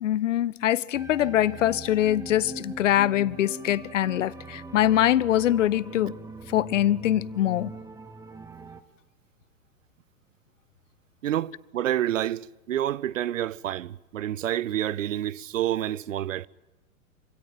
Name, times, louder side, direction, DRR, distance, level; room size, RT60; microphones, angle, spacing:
voice 1, 0.0-6.2 6.5-7.7, left 12 dB, 60° left, 0.8 m, -23 dB
sound 1, 0.9-8.8, right 3 dB, 5° right, 1.3 m, -42 dB
voice 2, 11.2-16.5, right 12 dB, 65° right, 0.8 m, -28 dB
26.0 x 17.0 x 9.0 m
figure-of-eight pair, 100°, 42 cm